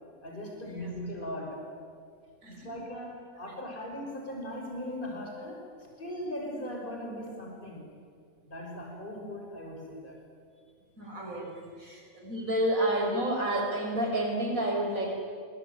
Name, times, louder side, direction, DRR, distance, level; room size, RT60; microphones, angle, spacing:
voice 1, 0.2-1.7 2.5-5.6 6.0-7.9 8.5-10.2, left 1 dB, 40° left, 0 dB, 5.9 m, -39 dB
voice 2, 2.4-2.8 11.0-15.2, right 1 dB, 85° right, 0 dB, 6.6 m, -30 dB
25.5 x 24.5 x 9.5 m, 2.2 s
omnidirectional pair, 1.4 m